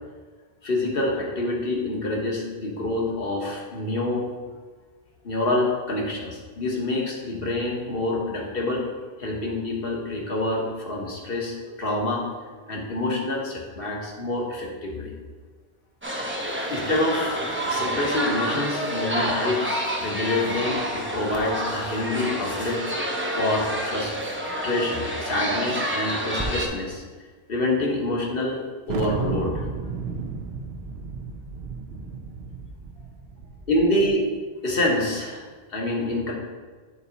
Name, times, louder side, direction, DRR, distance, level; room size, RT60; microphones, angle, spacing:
voice 1, 0.6-4.3 5.2-8.8 9.2-12.3 12.7-15.1 16.2-22.8 23.3-24.1 24.6-27.0 27.5-28.6 28.9-29.6 33.7-34.2 34.6-36.3, left 2 dB, 60° left, -2 dB, 1.5 m, -27 dB
sound 1, 16.0-26.7, equal, 15° right, 0.7 m, -28 dB
Thunder, 28.9-34.0, right 5 dB, 80° right, 0.9 m, -33 dB
8.7 x 4.1 x 4.0 m, 1.4 s
omnidirectional pair, 1.1 m